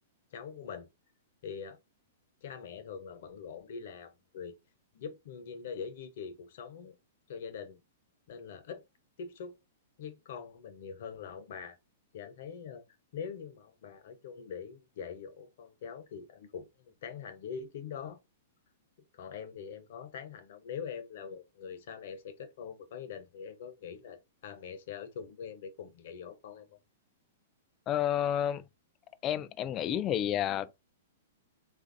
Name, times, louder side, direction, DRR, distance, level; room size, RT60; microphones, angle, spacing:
voice 1, 0.3-0.9 1.4-1.8 2.4-4.5 4.9-6.9 7.3-7.8 8.3-8.8 9.2-9.6 10.0-11.8 12.1-12.8 13.1-18.2 19.1-26.8, left 6 dB, 65° left, 0.7 m, -43 dB
voice 2, 27.9-28.6 29.2-30.7, left 10 dB, 30° left, 0.3 m, -30 dB
3.1 x 2.5 x 2.5 m
hypercardioid pair, 130°, 0 cm